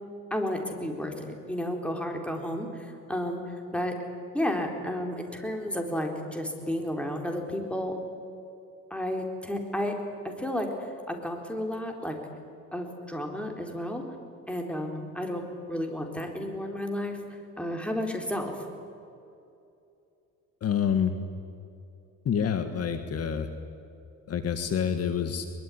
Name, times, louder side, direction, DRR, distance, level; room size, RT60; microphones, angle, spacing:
voice 1, 0.3-4.0 4.3-8.0 8.9-10.0 10.2-12.1 12.7-14.0 14.5-15.4 15.7-17.2 17.6-18.6, left 1 dB, 5° left, 3 dB, 4.0 m, -32 dB
voice 2, 20.6-21.2 22.3-23.5 24.3-25.5, left 8 dB, 50° left, 8 dB, 1.8 m, -27 dB
22.5 x 22.5 x 9.9 m, 2.7 s
cardioid pair, 120°, 32 cm